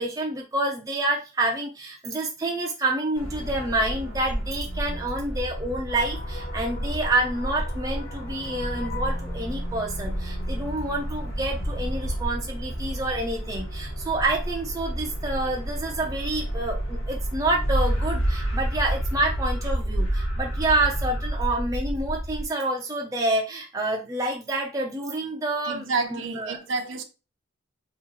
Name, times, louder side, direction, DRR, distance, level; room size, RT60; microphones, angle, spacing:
voice 1, 0.0-26.6, right 2 dB, 15° right, 0.5 m, -28 dB
sound 1, 3.1-22.5, right 1 dB, 80° left, 1.1 m, -30 dB
sound 2, 5.9-12.3, equal, 45° left, 1.4 m, -35 dB
voice 2, 25.7-27.0, right 4 dB, 65° right, 0.6 m, -29 dB
3.0 x 2.5 x 3.7 m
head